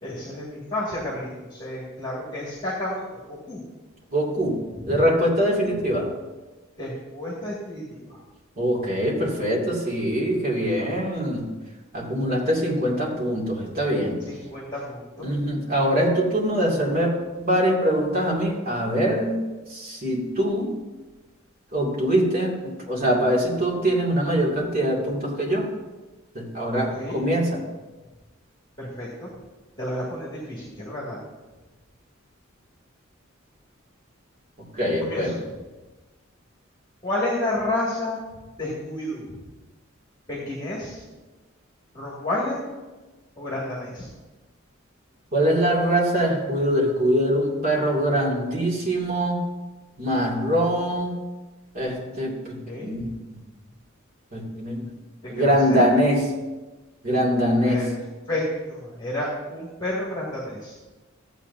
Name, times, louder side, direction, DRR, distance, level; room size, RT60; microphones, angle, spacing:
voice 1, 0.0-3.6 4.8-5.0 6.8-8.2 14.2-15.3 26.7-27.2 28.8-29.3 29.8-31.2 35.0-35.4 37.0-38.2 38.6-39.2 40.3-41.0 41.9-42.6 43.4-44.1 52.7-53.1 55.2-55.9 57.6-57.9 58.3-60.8, left 1 dB, 20° left, -5 dB, 2.1 m, -31 dB
voice 2, 4.1-4.6 4.9-6.1 8.6-11.5 11.9-14.2 15.2-19.4 19.7-20.7 21.7-25.7 26.3-27.5 34.7-35.4 45.3-49.4 50.0-51.1 51.7-53.4 54.3-54.9 55.3-56.3 57.0-57.9, equal, 45° right, -4 dB, 2.5 m, -23 dB
15.0 x 8.2 x 2.7 m, 1.2 s
head